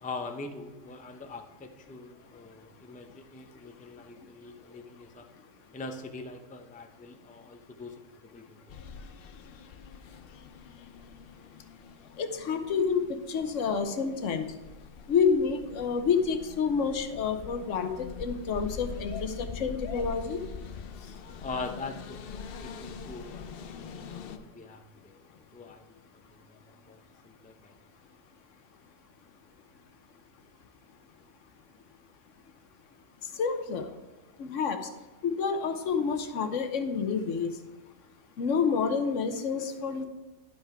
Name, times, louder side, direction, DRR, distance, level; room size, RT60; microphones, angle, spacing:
voice 1, 0.0-5.3 5.7-8.6 11.4-11.6 21.4-25.2 25.5-26.0 26.3-27.0 27.2-27.8, left 3 dB, 10° left, 5 dB, 0.4 m, -43 dB
sound 1, 8.7-24.4, left 5 dB, 60° left, 0.7 m, -43 dB
voice 2, 12.2-14.4 15.1-20.4 33.4-33.9 34.4-34.8 35.2-37.5 38.4-40.1, left 6 dB, 80° left, 8 dB, 1.2 m, -28 dB
11.5 x 5.7 x 4.6 m, 1.2 s
omnidirectional pair, 1.3 m